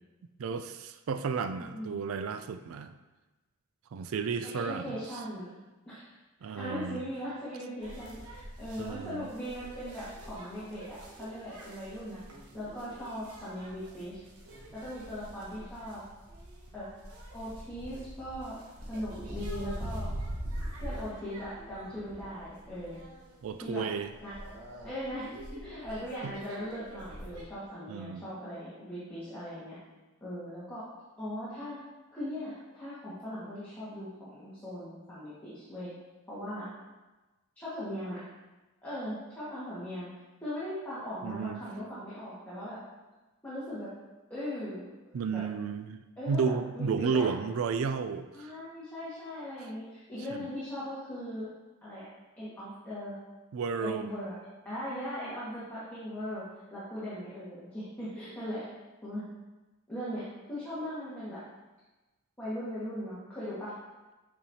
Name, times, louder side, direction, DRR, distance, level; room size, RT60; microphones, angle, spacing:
voice 1, 0.4-2.9 3.9-4.9 6.4-7.0 8.8-9.3 23.4-24.1 26.2-26.3 27.9-28.3 41.2-41.6 45.1-48.5 50.3-50.5 53.5-54.1, right 5 dB, 65° right, 9 dB, 0.3 m, -32 dB
voice 2, 1.6-2.2 4.4-5.5 5.9-6.1 6.6-12.2 12.5-14.2 14.7-16.0 16.7-16.9 17.3-18.6 18.9-20.2 20.8-23.0 23.6-23.9 24.2-24.3 24.8-29.8 30.2-30.8 31.2-31.8 32.1-35.9 36.3-36.7 37.6-38.2 38.8-40.1 40.4-42.8 43.4-43.9 44.3-44.9 45.3-45.4 46.2-47.3 48.3-51.5 51.8-52.1 52.4-53.1 53.8-54.4 54.7-56.4 56.7-58.6 59.0-59.2 59.9-60.2 60.5-61.4 62.4-63.7, equal, 10° left, -12 dB, 1.7 m, -39 dB
sound 1, 7.8-27.4, right 1 dB, 80° right, 1.2 m, -44 dB
8.3 x 4.4 x 2.8 m, 1.1 s
head